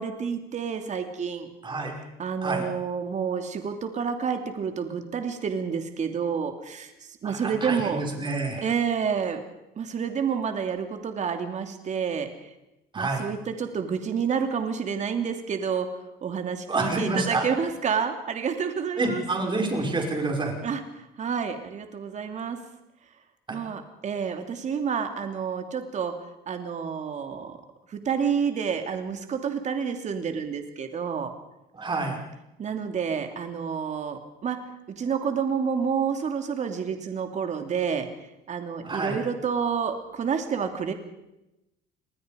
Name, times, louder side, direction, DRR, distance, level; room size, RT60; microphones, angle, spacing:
voice 1, 0.0-1.5 2.2-6.9 7.2-8.0 8.6-9.4 9.8-12.3 12.9-15.9 16.2-19.2 20.6-22.6 23.5-26.2 26.5-27.6 27.9-31.3 32.6-34.6 34.9-38.1 38.5-40.9, right 6 dB, 45° right, 6 dB, 2.9 m, -29 dB
voice 2, 1.6-2.0 2.4-2.7 7.2-8.7 12.9-13.3 16.7-17.5 19.0-20.5 23.5-23.6 31.7-32.2 38.8-39.2, right 3 dB, 30° right, 1 dB, 5.9 m, -28 dB
28.0 x 21.0 x 5.3 m, 0.91 s
cardioid pair, 110°, 17 cm